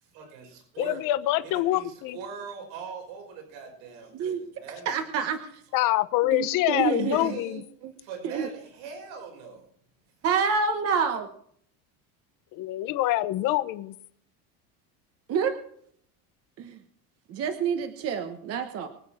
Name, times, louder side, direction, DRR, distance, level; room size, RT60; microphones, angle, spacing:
voice 1, 0.0-1.0 1.4-5.1 6.2-6.3 6.8-9.7, right 6 dB, 80° right, 5.6 m, -42 dB
voice 2, 0.8-2.2 5.7-7.6 12.5-13.9, left 15 dB, 50° left, 0.9 m, -25 dB
voice 3, 4.8-5.4 6.2-7.4 7.8-7.9 8.2-8.5 10.2-11.3 15.3-15.5 16.6-16.8 17.3-18.9, right 6 dB, 35° right, 1.3 m, -27 dB
24.5 x 8.4 x 4.4 m
cardioid pair, 175°, 42 cm